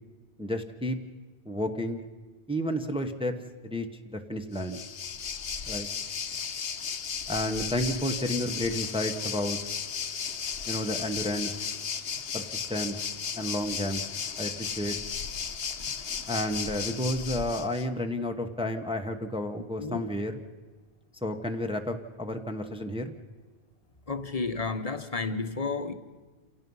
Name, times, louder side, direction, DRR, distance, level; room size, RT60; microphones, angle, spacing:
voice 1, 0.4-1.0 1.4-2.0 2.5-3.3 3.6-4.8 5.6-5.9 7.3-9.6 10.7-11.5 12.3-13.0 13.3-14.0 14.4-15.0 16.3-20.4 21.2-23.1, left 1 dB, 5° right, 5 dB, 1.0 m, -31 dB
Waves surf, 4.5-17.9, left 6 dB, 65° left, 1.1 m, -35 dB
voice 2, 24.1-25.9, left 4 dB, 35° left, 9 dB, 1.1 m, -31 dB
29.0 x 17.0 x 5.5 m, 1.3 s
omnidirectional pair, 1.1 m